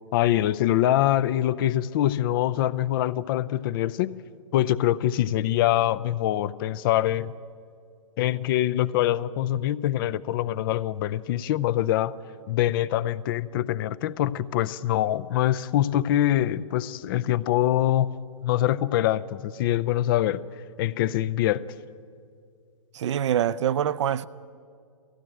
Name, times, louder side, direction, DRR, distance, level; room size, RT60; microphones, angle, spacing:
voice 1, 0.1-4.2 4.5-7.3 8.2-12.1 12.5-18.1 18.4-20.4 20.8-21.7, left 13 dB, 40° left, 0.6 m, -24 dB
voice 2, 22.9-24.3, right 10 dB, 60° right, 0.6 m, -25 dB
18.5 x 15.5 x 9.1 m
hypercardioid pair, 125°, 17 cm